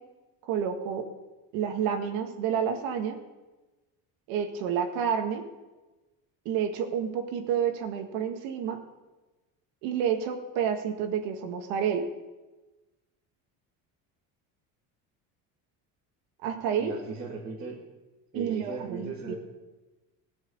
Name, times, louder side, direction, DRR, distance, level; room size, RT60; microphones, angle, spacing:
voice 1, 0.5-1.1 1.5-3.2 4.3-5.4 6.5-8.8 9.8-12.0 16.4-16.9 18.3-19.3, right 8 dB, 80° right, 5 dB, 1.9 m, -29 dB
voice 2, 16.8-17.8 18.3-19.3, right 4 dB, 25° right, -5 dB, 2.0 m, -37 dB
18.0 x 6.4 x 8.4 m, 1.1 s
cardioid pair, 165°, 35 cm